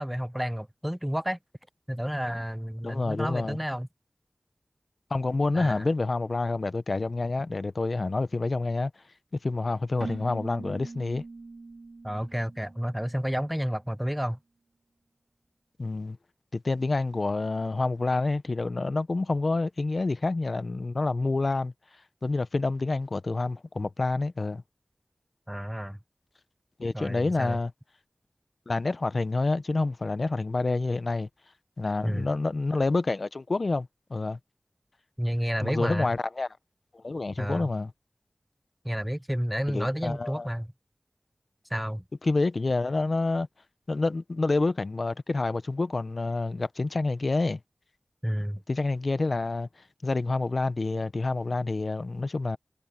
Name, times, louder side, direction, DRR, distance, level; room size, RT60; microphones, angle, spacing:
voice 1, 0.0-1.4 1.9-3.9 5.5-5.9 12.0-14.4 25.5-26.0 26.9-27.6 32.0-32.3 35.2-36.1 37.4-37.7 38.8-40.7 41.7-42.0 48.2-48.6, equal, 5° right, 0.6 m, -30 dB
voice 2, 2.8-3.6 5.1-8.9 9.4-11.2 15.8-16.2 16.5-21.7 22.2-24.6 26.8-27.7 28.7-31.3 31.8-34.4 35.6-36.5 36.9-37.9 39.7-40.5 42.2-43.5 43.9-47.6 48.7-49.7 50.0-52.6, left 3 dB, 65° left, 0.7 m, -28 dB
Keyboard (musical), 10.0-13.6, right 3 dB, 60° right, 0.6 m, -42 dB
wide cardioid pair, 70°, 0 cm